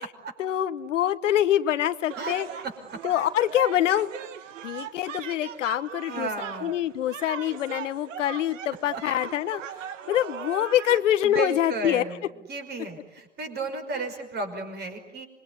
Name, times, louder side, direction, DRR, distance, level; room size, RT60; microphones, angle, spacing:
voice 1, 0.4-2.5 3.0-4.1 4.6-6.3 6.6-12.0, left 11 dB, 75° left, 12 dB, 1.2 m, -25 dB
sound 1, 2.1-11.0, right 8 dB, 80° right, 1.8 m, -39 dB
voice 2, 6.1-6.7 10.9-11.0 11.2-12.2 12.5-15.3, right 3 dB, 25° right, 6 dB, 5.6 m, -33 dB
26.0 x 23.5 x 9.7 m, 1.0 s
hypercardioid pair, 115°, 38 cm